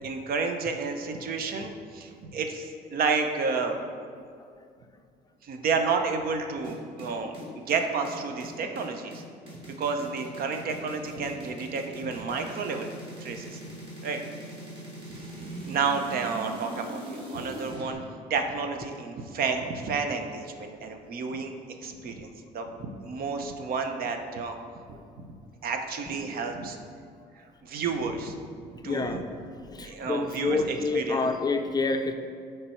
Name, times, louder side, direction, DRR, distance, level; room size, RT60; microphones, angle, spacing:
voice 1, 0.0-3.8 5.4-9.2 9.7-12.9 13.2-13.6 14.0-14.2 15.1-18.0 18.3-21.5 21.8-24.6 25.6-26.8 27.4-28.3 28.8-29.2 29.8-31.2, right 4 dB, 60° right, 5 dB, 0.7 m, -31 dB
sound 1, 6.6-17.9, right 1 dB, 30° right, 1.7 m, -41 dB
voice 2, 7.2-7.6 13.7-13.8 24.9-25.0 26.1-26.2 28.8-29.3 29.7-32.1, left 3 dB, 25° left, 6 dB, 0.4 m, -29 dB
8.8 x 3.3 x 4.4 m, 2.2 s
cardioid pair, 110°, 17 cm